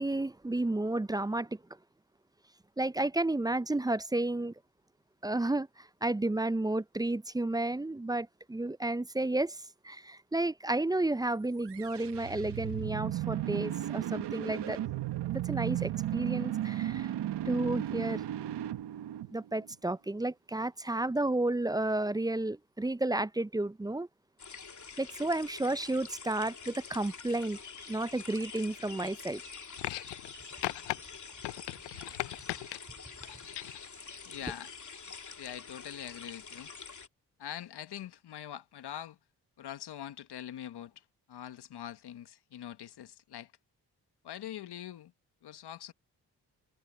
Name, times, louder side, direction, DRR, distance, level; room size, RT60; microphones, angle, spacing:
voice 1, 0.0-1.6 2.8-4.5 5.2-14.8 15.3-17.1 17.5-18.2 19.3-24.1 25.0-27.6 27.9-29.4, right 2 dB, 10° right, 0.5 m, -32 dB
sound 1, 11.6-19.8, right 13 dB, 80° right, 1.6 m, -35 dB
sound 2, 24.4-37.1, left 5 dB, 45° left, 3.3 m, -47 dB
sound 3, 29.8-30.3 30.6-31.0 31.4-32.8 33.2-33.9 34.9-35.0, left 19 dB, 90° left, 0.6 m, -37 dB
voice 2, 34.2-34.7 35.4-36.7 37.4-39.2 39.6-41.0 41.3-43.5 44.2-45.1 45.4-45.9, left 11 dB, 70° left, 1.5 m, -43 dB
supercardioid pair, 50°, 41 cm